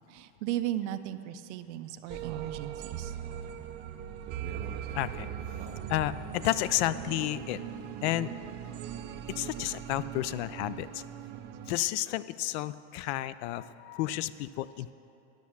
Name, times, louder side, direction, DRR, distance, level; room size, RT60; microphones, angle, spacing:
voice 1, 0.1-3.1, right 12 dB, 90° right, 11 dB, 0.6 m, -36 dB
sound 1, 2.1-11.8, right 9 dB, 30° right, 0.4 m, -40 dB
voice 2, 4.9-5.3 5.9-7.6 8.0-8.3 9.3-11.0 11.7-14.9, left 15 dB, 75° left, 16 dB, 0.5 m, -31 dB
10.5 x 6.4 x 7.0 m, 2.8 s
supercardioid pair, 155°, 34 cm